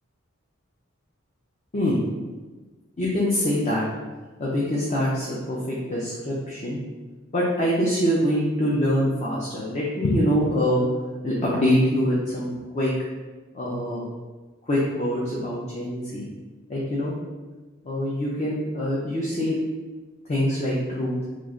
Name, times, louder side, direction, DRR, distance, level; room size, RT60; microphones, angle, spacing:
voice 1, 1.7-2.0 3.0-3.8 4.4-6.8 7.3-10.9 11.2-12.9 13.5-14.0 14.7-16.3 16.7-17.1 17.8-19.6 20.3-21.1, equal, 30° left, -5 dB, 0.5 m, -24 dB
3.1 x 2.4 x 3.6 m, 1.3 s
head